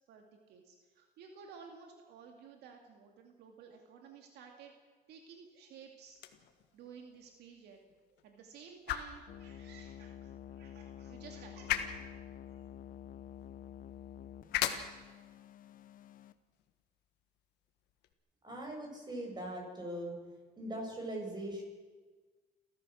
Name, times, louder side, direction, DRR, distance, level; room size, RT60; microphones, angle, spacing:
voice 1, 0.1-4.8 5.1-7.8 8.2-11.9 12.5-12.6, right 6 dB, 80° right, 3 dB, 2.4 m, -54 dB
sound 1, 6.1-18.1, left 11 dB, 85° left, 1.6 m, -43 dB
sound 2, 9.3-16.3, left 11 dB, 55° left, 1.0 m, -50 dB
voice 2, 18.4-20.1 20.6-21.6, right 1 dB, 25° right, 0 dB, 7.5 m, -40 dB
29.5 x 14.0 x 6.4 m, 1.3 s
cardioid pair, 110°, 17 cm